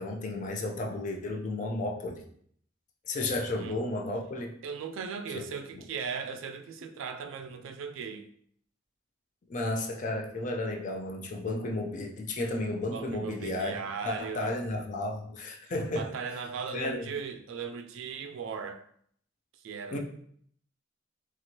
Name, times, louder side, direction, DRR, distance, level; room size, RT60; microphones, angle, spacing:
voice 1, 0.0-2.2 3.1-4.5 5.3-5.5 5.7-5.8 9.5-13.8 14.0-16.1 16.7-17.1 19.9-20.0, left 2 dB, 40° left, 0.4 m, -33 dB
voice 2, 3.4-3.8 4.6-8.3 12.9-14.5 16.0-18.8 19.6-20.0, right 6 dB, 85° right, 0.3 m, -38 dB
3.0 x 2.5 x 2.8 m
head